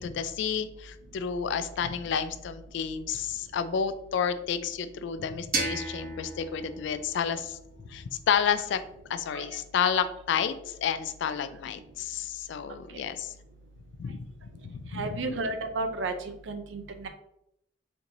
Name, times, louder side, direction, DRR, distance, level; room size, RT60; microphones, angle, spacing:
voice 1, 0.0-7.6 7.9-8.8 9.1-13.3 14.0-14.3 14.6-15.2, left 7 dB, 65° left, 11 dB, 0.3 m, -30 dB
sound 1, 5.5-8.4, right 3 dB, 50° right, 0.8 m, -35 dB
voice 2, 14.9-16.1 16.5-17.1, right 3 dB, 70° right, 7 dB, 0.5 m, -32 dB
4.4 x 2.6 x 2.7 m, 0.78 s
head